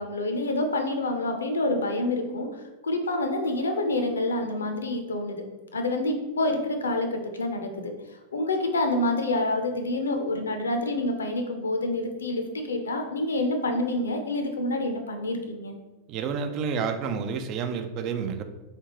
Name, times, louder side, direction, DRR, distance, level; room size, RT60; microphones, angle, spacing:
voice 1, 0.0-2.5 2.8-5.4 5.7-7.9 8.3-15.7, left 2 dB, 70° left, 5 dB, 0.5 m, -27 dB
voice 2, 16.1-18.4, right 6 dB, 40° right, 7 dB, 0.4 m, -29 dB
3.8 x 3.3 x 3.0 m, 1.2 s
figure-of-eight pair, 90°, 0 cm